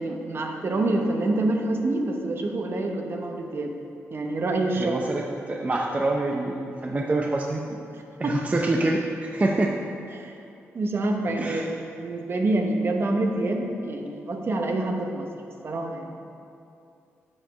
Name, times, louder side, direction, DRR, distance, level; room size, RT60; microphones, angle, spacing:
voice 1, 0.0-3.7 4.1-5.0 8.2-8.4 10.1-10.3 10.7-11.7 12.0-15.3 15.6-16.2, right 2 dB, 50° right, 3 dB, 1.0 m, -26 dB
voice 2, 4.7-7.6 8.2-9.8 11.4-11.7, right 2 dB, 30° right, 0 dB, 0.6 m, -26 dB
7.6 x 5.1 x 6.2 m, 2.6 s
cardioid pair, 70°, 5 cm